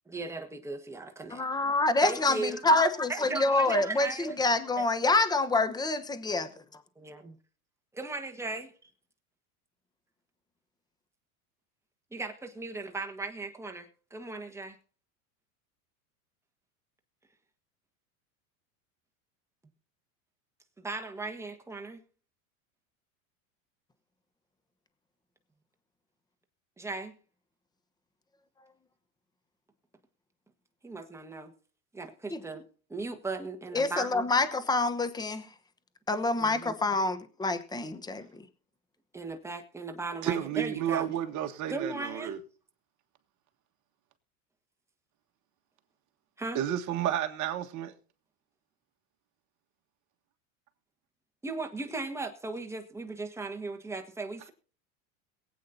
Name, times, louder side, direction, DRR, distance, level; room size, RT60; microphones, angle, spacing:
voice 1, 0.1-1.4 2.0-2.6 3.1-4.5 4.8-4.9 7.0-7.4 7.9-8.7 12.1-14.8 20.8-22.0 26.8-27.2 30.8-31.5 31.9-32.6 32.9-34.2 36.4-36.7 39.1-41.1 41.7-42.3 46.4-46.6 51.4-54.5, right 3 dB, 5° right, 1.4 m, -37 dB
voice 2, 1.3-6.5 32.3-32.4 33.7-35.5 36.1-38.3, left 2 dB, 10° left, 1.1 m, -27 dB
voice 3, 40.2-42.4 46.6-47.9, right 11 dB, 45° right, 1.6 m, -31 dB
22.5 x 8.5 x 2.8 m
supercardioid pair, 110°, 42 cm